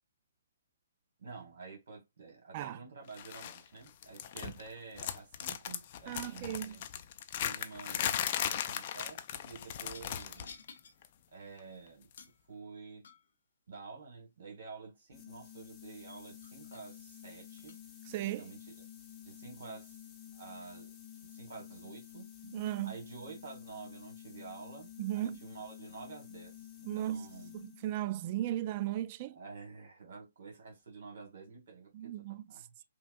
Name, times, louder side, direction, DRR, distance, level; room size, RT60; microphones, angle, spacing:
voice 1, 1.2-6.9 7.4-10.6 11.3-12.1 12.5-13.0 13.7-17.8 18.4-18.7 19.2-20.0 20.3-20.9 21.2-22.3 22.8-27.6 29.3-32.7, right 4 dB, 65° right, 1.7 m, -49 dB
sound 1, 3.2-3.6 3.9-4.7 5.0-10.5 10.8-11.1 12.1-12.2, left 10 dB, 40° left, 0.5 m, -37 dB
voice 2, 6.1-6.8 18.1-18.5 22.5-23.0 25.0-25.4 26.9-27.3 27.5-29.4 31.9-32.4, right 13 dB, 35° right, 0.3 m, -36 dB
sound 2, 7.0-7.2 8.7-9.1 9.9-11.0 12.2-12.4 13.0-13.4 15.8-15.9 16.4-16.9 17.6-17.8, left 5 dB, 65° left, 0.8 m, -54 dB
sound 3, 15.1-28.0, left 11 dB, 15° left, 0.9 m, -51 dB
5.6 x 2.3 x 2.5 m
hypercardioid pair, 145°, 0 cm